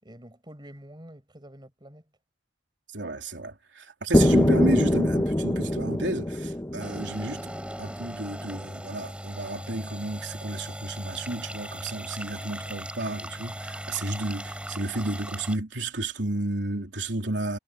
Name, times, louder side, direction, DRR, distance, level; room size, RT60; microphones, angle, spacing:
voice 1, 0.0-2.1, right 1 dB, 25° right, 5.1 m, -47 dB
voice 2, 2.9-7.5 7.8-17.6, right 2 dB, 80° right, 3.5 m, -32 dB
sound 1, 4.1-8.0, left 1 dB, 15° left, 0.9 m, -24 dB
sound 2, 6.8-15.6, right 1 dB, 5° right, 4.8 m, -38 dB
head